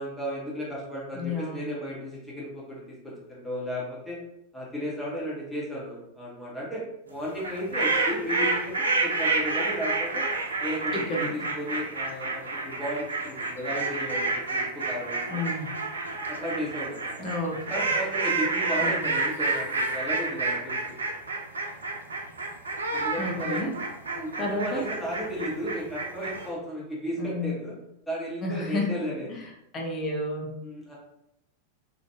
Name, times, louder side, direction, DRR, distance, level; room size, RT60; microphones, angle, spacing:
voice 1, 0.0-4.2 4.5-8.7 9.0-10.3 10.6-15.5 16.3-17.1 17.7-21.0 22.9-23.6 24.1-27.7 28.1-29.3 30.6-30.9, equal, 5° left, -6 dB, 0.9 m, -34 dB
voice 2, 1.2-1.6 10.9-11.3 15.3-15.7 17.2-17.6 18.8-19.1 23.2-23.7 24.4-24.8 27.2-27.5 28.4-28.9 29.7-30.5, left 1 dB, 25° left, 1 dB, 0.6 m, -30 dB
sound 1, 7.4-26.5, right 3 dB, 75° right, 0.4 m, -29 dB
2.8 x 2.4 x 2.2 m, 0.82 s
figure-of-eight pair, 90°, 0 cm